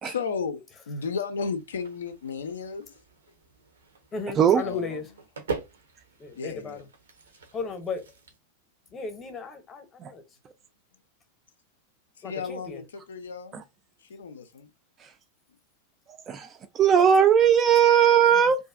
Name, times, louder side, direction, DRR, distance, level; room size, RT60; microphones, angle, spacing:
voice 1, 0.0-2.9 4.6-5.0 6.4-6.9 12.2-13.6 14.1-14.7 18.3-18.4, left 5 dB, 65° left, 0.4 m, -34 dB
sound 1, 1.6-8.4, right 5 dB, 65° right, 0.6 m, -42 dB
voice 2, 4.1-5.0 6.2-6.9 7.5-8.0 8.9-10.2 12.2-12.8, left 4 dB, 20° left, 0.7 m, -35 dB
voice 3, 16.7-18.6, right 8 dB, 25° right, 0.3 m, -19 dB
2.6 x 2.3 x 2.4 m
figure-of-eight pair, 90°, 0 cm